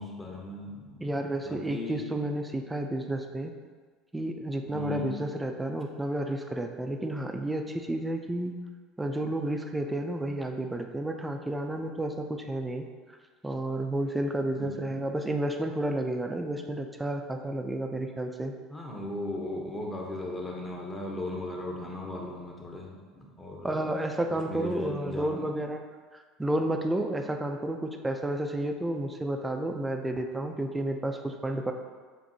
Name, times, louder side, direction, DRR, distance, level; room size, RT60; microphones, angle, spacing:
voice 1, 0.0-1.0 1.5-2.0 4.7-5.2 14.6-14.8 18.7-23.8 24.3-25.5, left 2 dB, 15° left, -1 dB, 0.8 m, -37 dB
voice 2, 1.0-3.5 4.1-8.6 9.0-12.9 13.4-18.5 23.6-25.8 26.1-31.7, right 1 dB, 10° right, 4 dB, 0.4 m, -31 dB
7.2 x 2.6 x 2.7 m, 1.5 s
supercardioid pair, 125°, 0 cm